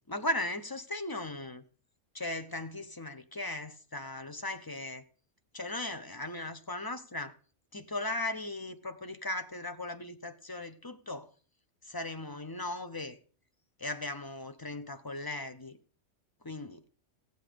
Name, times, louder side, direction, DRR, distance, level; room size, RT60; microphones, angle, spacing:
voice 1, 0.1-1.6 2.1-5.0 5.5-7.3 7.7-11.3 11.8-13.2 13.8-15.8 16.4-16.8, left 2 dB, 20° left, 0.7 m, -37 dB
15.5 x 8.2 x 5.1 m
omnidirectional pair, 1.3 m